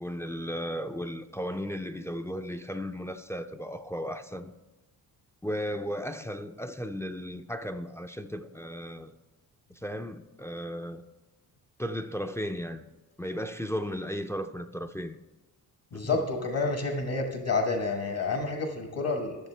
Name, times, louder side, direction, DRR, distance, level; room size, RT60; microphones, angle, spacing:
voice 1, 0.0-4.5 5.4-9.1 9.7-11.0 11.8-12.9 13.2-15.2 16.0-16.3, equal, 5° left, 0.5 m, -35 dB
voice 2, 15.9-19.4, left 3 dB, 55° left, 1.3 m, -29 dB
13.0 x 6.5 x 3.3 m
cardioid pair, 65°, 42 cm